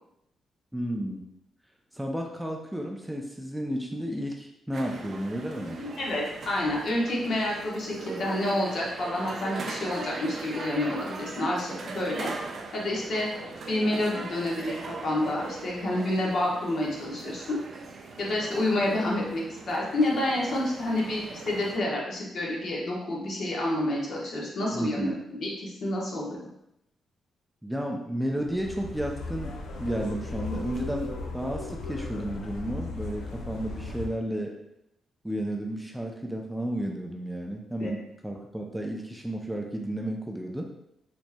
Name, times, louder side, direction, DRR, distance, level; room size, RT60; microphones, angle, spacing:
voice 1, 0.7-1.2 1.9-5.8 24.7-25.1 27.6-34.6 35.2-40.6, right 1 dB, 5° right, 1 dB, 0.4 m, -32 dB
sound 1, 4.7-21.8, right 3 dB, 55° right, 0.5 m, -40 dB
voice 2, 5.8-12.3 12.7-13.3 13.7-17.6 18.2-26.4 37.8-37.9, left 1 dB, 65° left, -3 dB, 1.1 m, -29 dB
sound 2, 28.4-34.1, left 2 dB, 90° left, 0.5 m, -37 dB
4.4 x 3.0 x 2.2 m, 0.81 s
cardioid pair, 90°, 0 cm